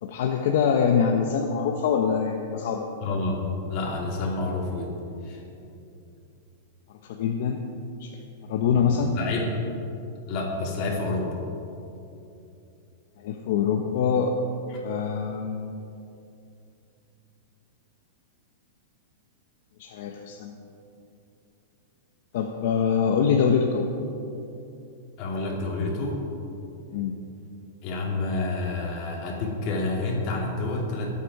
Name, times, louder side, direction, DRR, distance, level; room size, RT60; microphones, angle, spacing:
voice 1, 0.0-2.9 7.1-7.6 8.0-8.1 8.5-9.1 13.2-14.3 14.8-15.8 19.8-20.5 22.3-23.9 26.9-27.2, left 6 dB, 55° left, 3 dB, 1.0 m, -24 dB
voice 2, 3.0-3.4 3.7-4.9 5.2-5.4 8.7-8.8 9.1-9.5 10.3-11.3 14.7-14.8 25.2-26.2 27.8-31.1, left 2 dB, 35° left, -2 dB, 2.9 m, -29 dB
22.5 x 8.4 x 4.9 m, 2.7 s
supercardioid pair, 170°, 0 cm